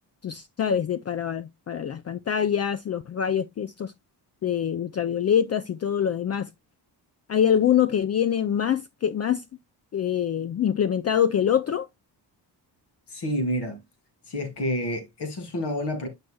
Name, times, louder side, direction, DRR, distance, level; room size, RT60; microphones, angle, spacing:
voice 1, 0.2-3.9 4.4-6.5 7.3-9.4 9.9-11.9, left 9 dB, 40° left, 0.4 m, -24 dB
voice 2, 13.1-13.8 14.3-16.1, left 1 dB, 75° left, 2.8 m, -29 dB
8.5 x 6.5 x 2.2 m
wide cardioid pair, 140°, 41 cm